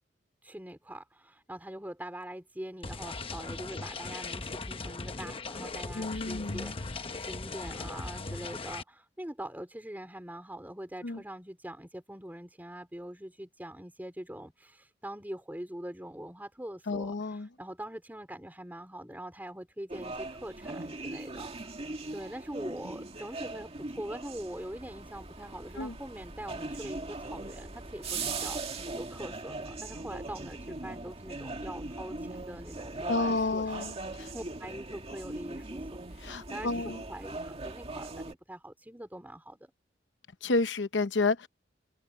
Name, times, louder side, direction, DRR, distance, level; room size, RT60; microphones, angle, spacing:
voice 1, 0.4-33.8 34.2-39.7, right 1 dB, 10° right, 3.7 m, -43 dB
sound 1, 2.8-8.8, left 3 dB, 30° left, 1.0 m, -39 dB
voice 2, 5.9-6.7 11.0-11.2 16.9-17.5 25.8-25.9 33.1-34.3 36.2-37.0 40.4-41.5, left 3 dB, 80° left, 0.9 m, -30 dB
sound 2, 19.9-38.3, right 3 dB, 35° right, 2.1 m, -40 dB
head